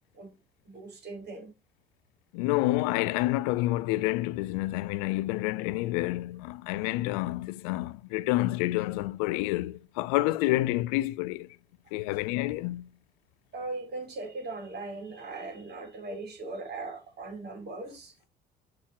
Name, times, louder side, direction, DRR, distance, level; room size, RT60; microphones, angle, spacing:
voice 1, 0.6-1.5 13.5-18.1, right 3 dB, 55° right, 4.3 m, -39 dB
voice 2, 2.3-11.5 11.9-12.9, left 18 dB, 85° left, 0.4 m, -28 dB
7.3 x 4.4 x 4.3 m
hypercardioid pair, 60°, 20 cm